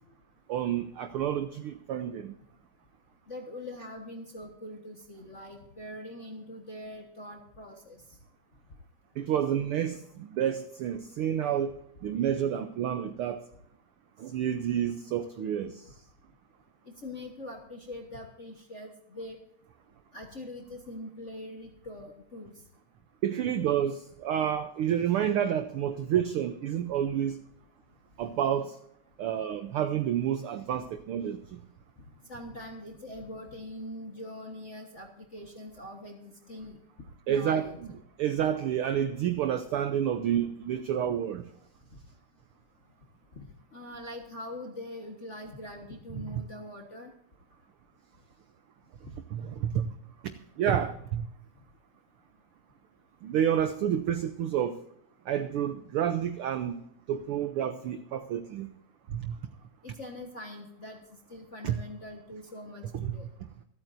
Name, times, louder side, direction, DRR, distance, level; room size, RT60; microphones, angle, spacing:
voice 1, 0.5-2.4 9.2-13.4 14.2-15.9 23.2-27.4 28.2-28.8 29.2-31.6 37.3-37.9 38.2-41.5 46.2-46.4 49.3-49.9 50.6-51.3 53.2-54.8 55.3-56.8 57.1-58.7 59.1-59.4 61.6-61.8 62.9-63.2, right 9 dB, 85° right, 1.2 m, -29 dB
voice 2, 3.3-8.0 16.9-19.4 20.1-22.5 32.3-36.8 37.3-37.8 43.3-43.4 43.7-47.1 59.8-61.0 61.3-63.2, left 1 dB, 40° left, 1.0 m, -43 dB
26.5 x 8.9 x 2.6 m
omnidirectional pair, 3.3 m